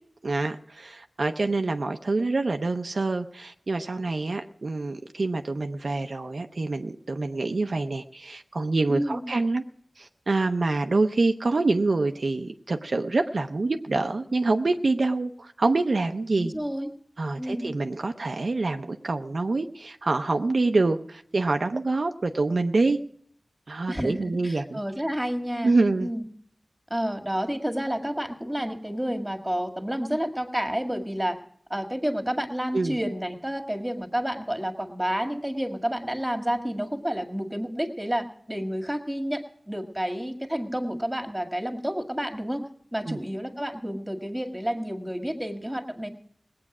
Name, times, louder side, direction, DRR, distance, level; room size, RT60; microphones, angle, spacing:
voice 1, 0.2-9.6 10.0-16.5 17.2-23.0 23.7-24.8 25.6-26.1 32.7-33.0 43.1-43.2, right 3 dB, 75° right, 6 dB, 0.6 m, -26 dB
voice 2, 8.9-9.2 16.3-16.9 17.4-17.7 23.9-25.7 26.0-26.2 26.9-31.4 31.7-42.7 42.9-46.1, equal, 10° right, 5 dB, 1.9 m, -30 dB
19.0 x 8.6 x 6.0 m, 0.63 s
wide cardioid pair, 50°, 0 cm